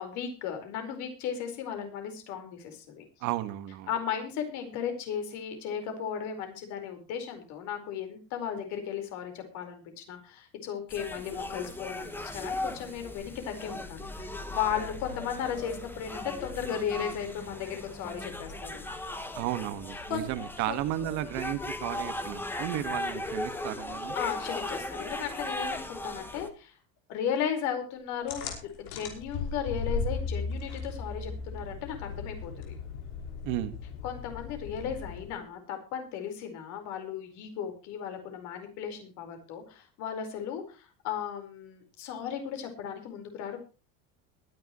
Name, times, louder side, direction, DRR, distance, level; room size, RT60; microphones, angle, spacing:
voice 1, 0.0-3.0 3.9-18.8 20.1-20.2 20.7-20.8 24.1-26.7 27.1-32.7 34.0-43.6, left 8 dB, 65° left, 6 dB, 4.7 m, -35 dB
voice 2, 3.2-3.9 19.4-24.2 33.4-33.8, right 13 dB, 65° right, 10 dB, 1.7 m, -33 dB
sound 1, 10.9-26.5, left 1 dB, 5° left, 1.5 m, -38 dB
sound 2, 28.3-35.4, left 4 dB, 90° left, 5.3 m, -36 dB
22.0 x 10.5 x 3.1 m, 0.33 s
cardioid pair, 160°, 31 cm